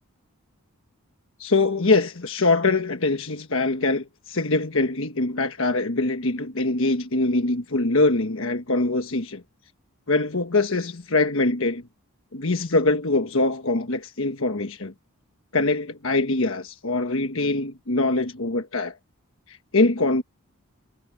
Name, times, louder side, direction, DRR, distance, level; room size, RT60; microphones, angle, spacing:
voice 1, 1.4-9.4 10.1-11.8 12.3-14.9 15.5-19.0 19.5-20.2, left 2 dB, 60° left, 1.3 m, -23 dB
head